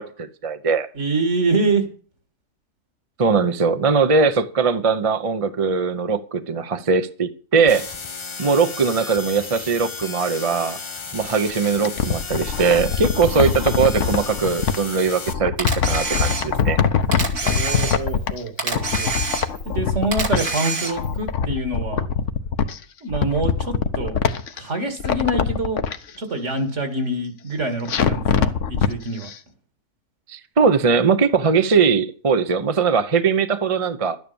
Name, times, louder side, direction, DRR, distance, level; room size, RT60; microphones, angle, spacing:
voice 1, 0.0-0.9 3.2-7.9 8.4-10.8 11.1-15.5 15.9-16.8 30.3-34.2, right 5 dB, 30° right, 0.7 m, -20 dB
voice 2, 0.9-1.9 17.4-19.1 19.6-22.0 23.0-24.2 24.5-25.9 26.2-29.3, right 2 dB, 60° right, 2.5 m, -25 dB
sound 1, 7.7-15.3, left 5 dB, 35° left, 0.5 m, -34 dB
sound 2, 11.6-14.8 15.3-18.5 18.7-20.6 20.9-22.8 23.1-24.6 25.0-26.0 27.9-28.9 29.3-29.4, left 7 dB, 65° left, 1.2 m, -23 dB
Camera, 15.6-16.7 17.1-18.3 18.6-19.7 20.1-21.2, right 3 dB, 80° right, 3.1 m, -26 dB
12.5 x 9.6 x 7.0 m
omnidirectional pair, 1.4 m